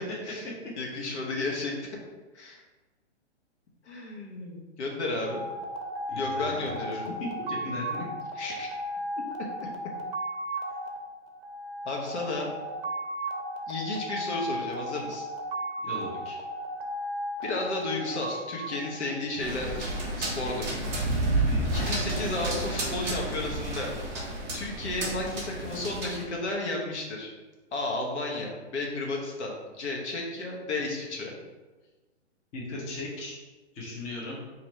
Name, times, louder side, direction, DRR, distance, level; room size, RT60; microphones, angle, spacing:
voice 1, 0.8-2.0 2.3-2.6 3.8-5.4 6.2-7.1 8.4-8.8 11.8-12.5 13.7-15.2 17.4-20.8 21.7-23.9 24.5-27.3 27.7-31.3, left 2 dB, 70° left, -1 dB, 1.1 m, -33 dB
sound 1, 5.3-19.7, equal, 55° right, 0.6 m, -35 dB
voice 2, 6.1-6.9 7.4-8.1 15.8-16.3 21.4-21.7 32.5-33.4 33.7-34.4, left 2 dB, 20° left, -6 dB, 0.8 m, -37 dB
sound 2, 19.4-26.2, right 2 dB, 10° right, 0.4 m, -30 dB
2.9 x 2.6 x 4.2 m, 1.2 s
hypercardioid pair, 145°, 35 cm